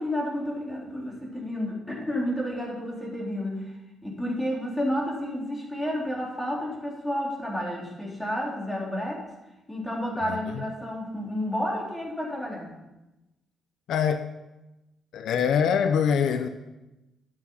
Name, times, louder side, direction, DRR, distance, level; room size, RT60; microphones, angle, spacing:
voice 1, 0.0-3.7 4.0-9.2 9.7-12.7, equal, 10° left, 4.0 m, -31 dB
voice 2, 10.3-10.6 13.9-14.3 15.1-16.5, left 7 dB, 75° left, 0.7 m, -24 dB
12.0 x 8.5 x 5.7 m
cardioid pair, 90°, 0 cm